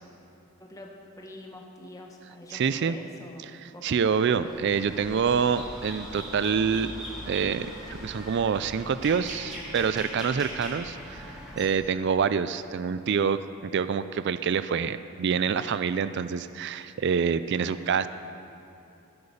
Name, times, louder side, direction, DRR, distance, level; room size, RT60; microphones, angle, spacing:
voice 1, 0.6-4.0, left 1 dB, 15° left, 0 dB, 1.3 m, -45 dB
voice 2, 2.5-3.0 3.8-6.9 7.3-18.1, right 6 dB, 50° right, 13 dB, 0.3 m, -26 dB
sound 1, 4.4-11.7, equal, 5° right, 3.1 m, -40 dB
15.0 x 8.1 x 7.1 m, 2.8 s
head